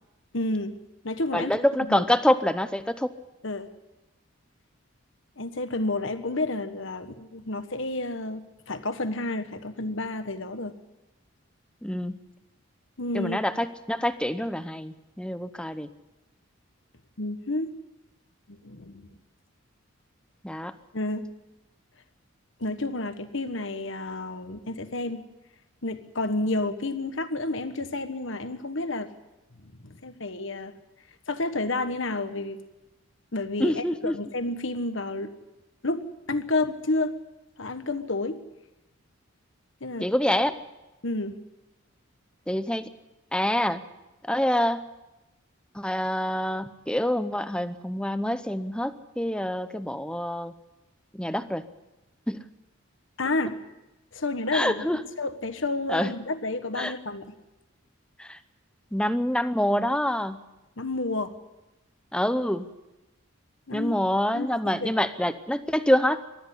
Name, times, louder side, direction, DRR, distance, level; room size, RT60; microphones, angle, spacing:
voice 1, 0.3-0.8 1.0-1.5 1.9-2.0 3.4-3.7 5.4-10.8 13.0-13.4 17.2-17.7 18.5-19.1 20.9-21.3 22.6-25.2 25.8-29.1 29.6-30.7 31.3-32.6 33.3-35.3 35.8-37.1 37.6-38.4 39.8-40.1 41.0-41.4 53.2-53.6 54.1-57.3 60.8-61.3 63.7-63.9 64.3-65.1, left 2 dB, 60° left, 10 dB, 1.4 m, -30 dB
voice 2, 1.3-3.1 11.8-12.2 13.1-15.9 20.4-20.7 33.6-34.2 40.0-40.6 42.5-42.9 43.3-43.8 44.3-44.8 45.7-50.5 51.1-51.6 52.3-52.5 54.5-55.0 55.9-56.1 56.7-56.9 58.2-58.4 58.9-60.4 62.1-62.7 63.7-66.3, left 1 dB, 5° left, 11 dB, 0.7 m, -26 dB
20.0 x 13.5 x 9.9 m, 0.99 s
head